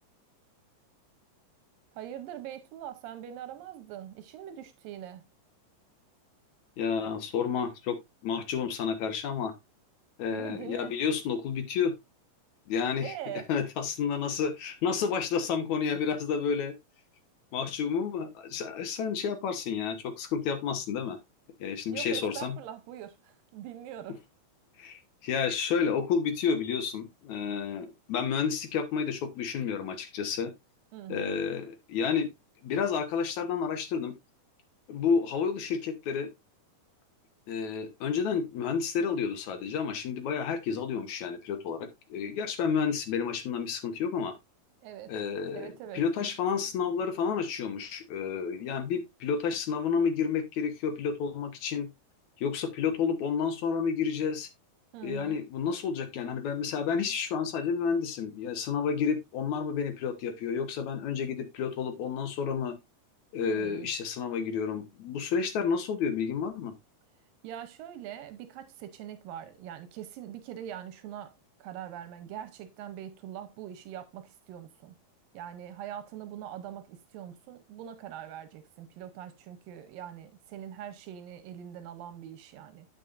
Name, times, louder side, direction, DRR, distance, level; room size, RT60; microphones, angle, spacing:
voice 1, 1.9-5.3 10.3-11.0 13.0-13.5 21.9-24.2 30.9-31.4 44.8-45.1 45.5-46.0 54.9-55.4 63.4-63.9 67.4-74.9 75.3-82.9, right 10 dB, 85° right, 2.5 m, -42 dB
voice 2, 6.8-8.0 8.2-9.5 10.2-11.9 12.7-13.1 13.5-16.7 17.5-21.2 21.6-22.6 24.8-30.5 31.1-32.3 32.6-34.1 34.9-36.3 37.5-44.3 45.1-51.9 52.4-54.5 55.0-62.7 63.3-66.7, left 6 dB, 65° left, 2.2 m, -30 dB
8.9 x 8.4 x 2.5 m
omnidirectional pair, 3.9 m